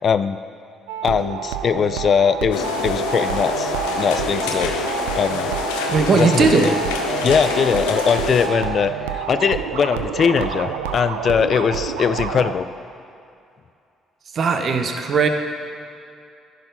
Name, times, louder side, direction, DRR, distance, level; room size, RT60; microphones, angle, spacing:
voice 1, 0.0-0.4 1.0-4.7 5.1-5.5 6.1-6.7 7.2-12.7, left 6 dB, 50° left, 11 dB, 0.3 m, -21 dB
sound 1, 0.9-12.5, right 8 dB, 90° right, 0.4 m, -28 dB
sound 2, 2.5-8.5, left 5 dB, 90° left, 0.6 m, -26 dB
voice 2, 5.9-6.8 14.3-15.3, right 4 dB, 55° right, 6 dB, 0.8 m, -18 dB
10.5 x 4.1 x 5.5 m, 2.5 s
hypercardioid pair, 60°, 0 cm